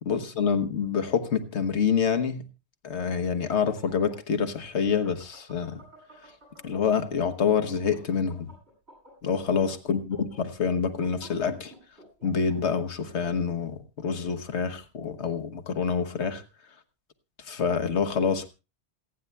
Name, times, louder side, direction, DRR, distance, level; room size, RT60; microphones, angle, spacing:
voice 1, 0.0-2.4 2.8-5.8 6.6-8.5 9.2-11.7 12.2-16.4 17.5-18.5, left 6 dB, 85° left, 9 dB, 1.5 m, -27 dB
sound 1, 3.8-7.1 7.4-12.8, right 1 dB, 75° right, 8.3 m, -52 dB
28.0 x 9.6 x 2.2 m, 0.29 s
omnidirectional pair, 1.1 m